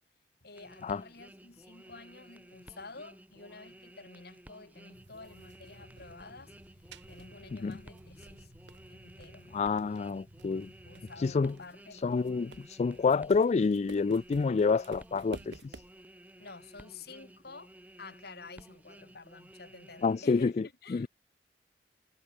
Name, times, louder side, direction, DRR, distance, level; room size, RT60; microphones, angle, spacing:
voice 1, 0.4-6.5 7.1-8.5 8.9-9.5 10.7-12.1 16.4-21.1, left 3 dB, 60° left, 3.8 m, -50 dB
sound 1, 0.5-20.3, right 1 dB, 10° right, 2.2 m, -55 dB
sound 2, 4.9-11.5, equal, 50° right, 6.5 m, -56 dB
sound 3, 4.9-16.0, right 3 dB, 80° right, 1.2 m, -52 dB
voice 2, 9.5-10.7 11.2-11.5 12.0-15.8 20.0-21.1, left 4 dB, 40° left, 0.3 m, -28 dB
head